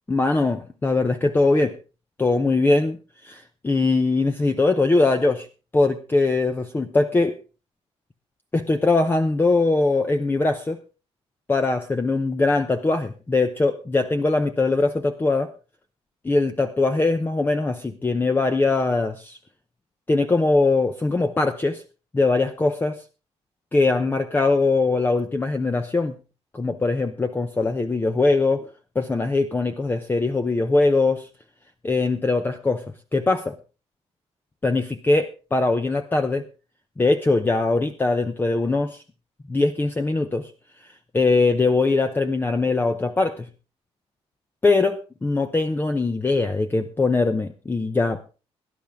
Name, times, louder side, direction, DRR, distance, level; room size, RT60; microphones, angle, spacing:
voice 1, 0.1-1.7 2.2-3.0 3.2-5.5 5.7-7.3 8.5-10.8 11.5-15.5 16.2-19.4 20.1-21.8 22.1-23.0 23.7-26.1 26.5-28.6 28.9-31.3 31.8-32.8 33.1-33.5 34.6-36.4 37.0-39.0 39.5-40.5 41.1-43.5 44.6-48.4, left 3 dB, 20° left, 7 dB, 0.8 m, -21 dB
18.5 x 10.5 x 3.6 m, 0.34 s
cardioid pair, 110°, 11 cm